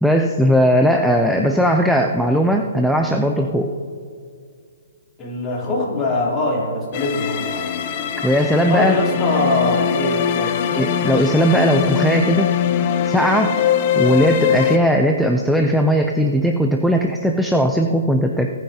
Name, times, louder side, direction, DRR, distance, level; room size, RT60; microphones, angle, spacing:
voice 1, 0.0-3.7 8.2-9.0 10.7-12.5 13.0-13.6 14.0-18.5, equal, ahead, 3 dB, 0.5 m, -18 dB
voice 2, 5.2-7.7 8.6-10.5, left 2 dB, 20° left, -5 dB, 3.3 m, -22 dB
sound 1, 6.9-14.8, left 9 dB, 40° left, 0.8 m, -22 dB
24.5 x 9.3 x 2.9 m, 2.2 s
hypercardioid pair, 145°, 0 cm